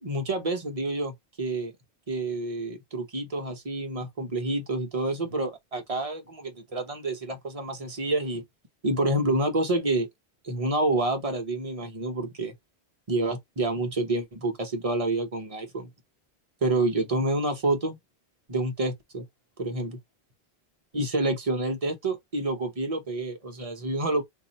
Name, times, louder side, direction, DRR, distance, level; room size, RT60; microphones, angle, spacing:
voice 1, 0.0-1.7 2.1-8.4 8.8-10.1 10.4-12.5 13.1-15.9 16.6-18.0 18.5-19.2 19.6-20.0 20.9-24.2, right 2 dB, 35° right, 0.9 m, -28 dB
2.6 x 2.6 x 4.1 m
omnidirectional pair, 1.1 m